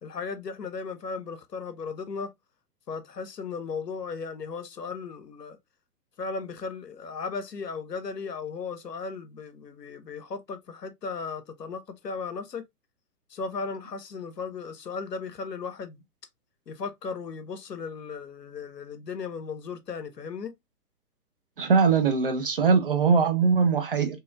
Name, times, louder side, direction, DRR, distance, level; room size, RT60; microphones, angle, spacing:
voice 1, 0.0-2.3 2.9-5.6 6.2-12.6 13.3-16.0 16.7-20.5, left 5 dB, 90° left, 0.6 m, -36 dB
voice 2, 21.6-24.2, right 5 dB, 40° right, 0.4 m, -21 dB
2.8 x 2.3 x 2.2 m
figure-of-eight pair, 120°, 47 cm